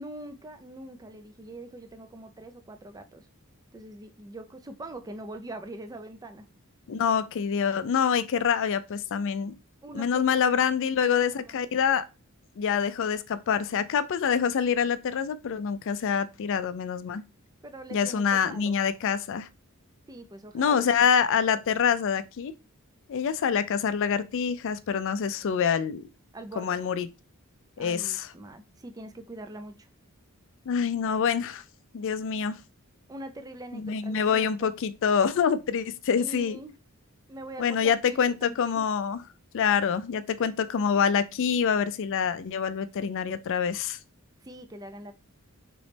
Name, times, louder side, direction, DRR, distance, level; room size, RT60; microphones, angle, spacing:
voice 1, 0.0-3.3 3.7-6.5 9.8-10.3 10.6-11.7 17.6-18.7 20.1-21.1 26.3-26.8 27.8-29.9 33.1-34.7 36.1-36.7 37.3-38.8 44.4-45.1, right 1 dB, 15° right, 0.4 m, -43 dB
voice 2, 6.9-9.5 9.9-12.0 12.6-17.2 17.9-19.5 20.5-22.5 23.1-26.1 26.6-27.1 27.8-28.3 30.7-31.6 31.9-32.6 33.7-36.6 37.6-39.2 39.5-44.0, left 7 dB, 60° left, 0.4 m, -26 dB
4.0 x 3.0 x 3.3 m
head